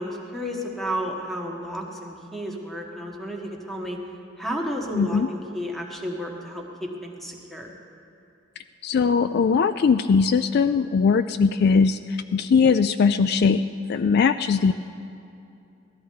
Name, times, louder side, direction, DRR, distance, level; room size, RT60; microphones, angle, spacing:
voice 1, 0.0-4.0 4.4-7.7, equal, ahead, 0 dB, 1.4 m, -32 dB
voice 2, 4.9-5.3 8.8-14.7, left 5 dB, 55° left, 12 dB, 0.3 m, -20 dB
17.5 x 13.0 x 4.7 m, 2.6 s
head